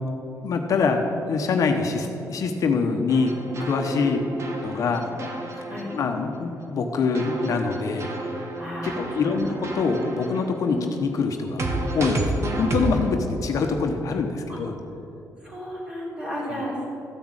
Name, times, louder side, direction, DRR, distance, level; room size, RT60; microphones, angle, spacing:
voice 1, 0.4-1.0 1.3-3.3 3.6-4.2 4.6-5.2 5.9-8.1 8.8-11.6 11.9-14.8 16.5-16.6, left 4 dB, 60° left, 3 dB, 1.0 m, -24 dB
sound 1, 3.1-6.7 7.1-13.1, right 2 dB, 45° right, 1.4 m, -31 dB
voice 2, 3.9-4.4 5.7-5.9 8.6-9.6 10.7-10.9 14.5-14.6 15.4-16.8, equal, 15° right, -5 dB, 3.5 m, -34 dB
14.0 x 6.2 x 8.8 m, 2.8 s
wide cardioid pair, 160°, 6 cm